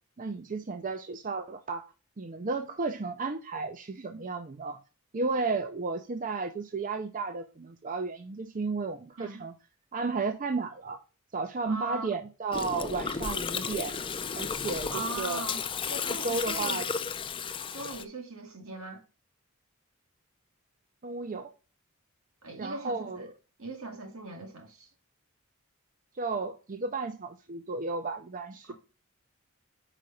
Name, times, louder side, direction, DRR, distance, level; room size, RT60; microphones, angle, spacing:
voice 1, 0.2-1.9 2.2-4.8 5.1-9.5 9.9-11.0 11.3-14.0 14.3-15.5 16.2-16.9 21.0-21.5 22.5-23.3 26.1-28.7, right 4 dB, 40° right, 0.5 m, -33 dB
voice 2, 11.6-12.1 14.9-15.6 15.9-16.9 17.7-19.0 22.4-23.3 23.6-24.9, right 2 dB, 75° right, 2.0 m, -39 dB
Gurgling, 12.5-18.0, left 6 dB, 25° left, 0.4 m, -33 dB
5.0 x 4.9 x 5.7 m
head